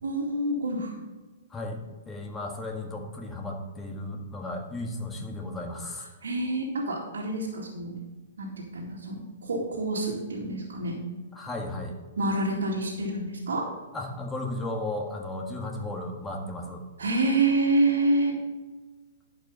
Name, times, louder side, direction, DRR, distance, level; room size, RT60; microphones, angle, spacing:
voice 1, 0.0-0.9 6.2-7.9 8.4-11.0 12.2-13.6 17.0-18.4, right 2 dB, 90° right, -5 dB, 2.2 m, -27 dB
voice 2, 1.5-6.1 11.3-11.9 13.9-16.8, left 2 dB, 10° left, 0 dB, 1.7 m, -35 dB
11.0 x 5.4 x 5.5 m, 1.3 s
hypercardioid pair, 140°, 0 cm